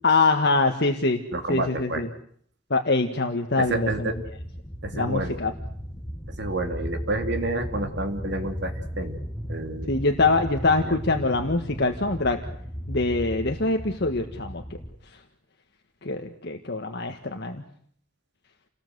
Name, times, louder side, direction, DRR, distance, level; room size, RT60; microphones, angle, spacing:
voice 1, 0.0-1.2 1.5-2.1 2.7-4.1 4.9-5.5 9.9-12.4 12.9-14.6 16.0-17.6, left 3 dB, 55° left, 5 dB, 1.6 m, -24 dB
voice 2, 1.3-2.0 3.6-4.2 4.8-5.3 6.4-9.2 9.5-9.9 10.8-11.0, right 2 dB, 55° right, 6 dB, 3.2 m, -29 dB
sound 1, 3.6-15.0, equal, 5° left, 1.7 m, -36 dB
29.5 x 19.5 x 8.0 m, 0.64 s
head